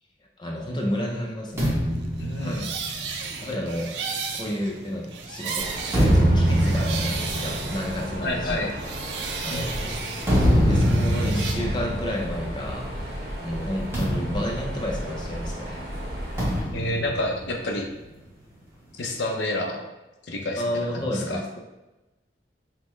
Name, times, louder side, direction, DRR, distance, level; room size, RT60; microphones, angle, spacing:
voice 1, 0.4-1.8 2.4-2.6 3.4-3.9 4.3-8.7 9.4-9.9 10.7-15.9 20.6-21.6, equal, 25° left, -1 dB, 0.5 m, -31 dB
sound 1, 1.6-5.2 5.7-13.1 13.4-13.6 13.9-15.5 16.4-18.1, equal, 15° right, 1.1 m, -25 dB
voice 2, 2.2-2.7 8.2-8.7 9.5-9.9 16.7-17.9 19.0-19.8 20.2-21.4, left 1 dB, 90° left, 2 dB, 0.6 m, -29 dB
sound 2, 2.2-8.4 8.7-11.5, right 5 dB, 85° right, 0.5 m, -34 dB
Mechanisms, 5.6-16.6, equal, 60° right, 1.2 m, -35 dB
5.3 x 2.1 x 3.1 m, 1.0 s
head